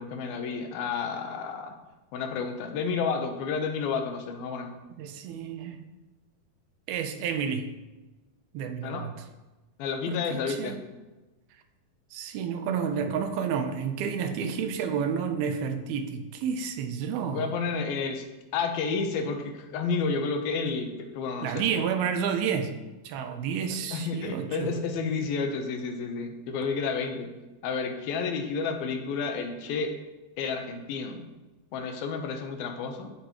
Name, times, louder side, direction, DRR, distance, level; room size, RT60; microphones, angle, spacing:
voice 1, 0.0-1.8 2.1-4.7 8.8-9.1 9.8-10.8 17.3-18.3 18.5-21.7 23.9-27.3 27.6-30.0 30.4-31.3 31.7-33.1, left 5 dB, 80° left, 2.8 m, -31 dB
voice 2, 5.0-5.8 6.9-7.7 8.5-9.1 10.1-10.8 12.1-17.5 21.4-22.7 23.0-24.7, right 7 dB, 85° right, 2.7 m, -30 dB
16.0 x 8.2 x 3.1 m
omnidirectional pair, 4.3 m